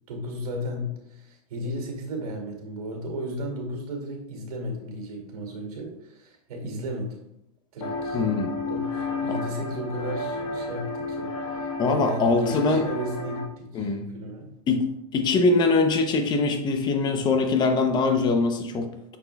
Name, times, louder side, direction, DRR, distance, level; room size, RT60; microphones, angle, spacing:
voice 1, 0.1-7.2 7.7-8.2 8.7-11.3 11.6-14.5, equal, 75° right, 2 dB, 2.4 m, -34 dB
sound 1, 7.8-13.5, left 3 dB, 70° left, 1.5 m, -32 dB
voice 2, 8.1-8.5 11.8-12.8 13.7-14.1 14.7-14.9 15.1-18.9, left 3 dB, 20° left, 6 dB, 0.7 m, -22 dB
6.8 x 6.5 x 2.3 m, 0.80 s
supercardioid pair, 145°, 19 cm